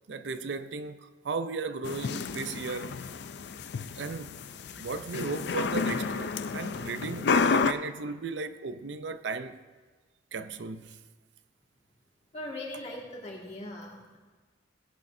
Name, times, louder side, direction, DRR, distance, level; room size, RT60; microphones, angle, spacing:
voice 1, 0.1-3.0 3.9-4.3 4.8-9.6 10.3-11.0, right 4 dB, 75° right, 0.5 m, -36 dB
sound 1, 1.8-7.7, left 5 dB, 65° left, 0.4 m, -30 dB
voice 2, 12.3-14.2, left 1 dB, 35° left, 2.0 m, -40 dB
16.5 x 8.4 x 2.7 m
head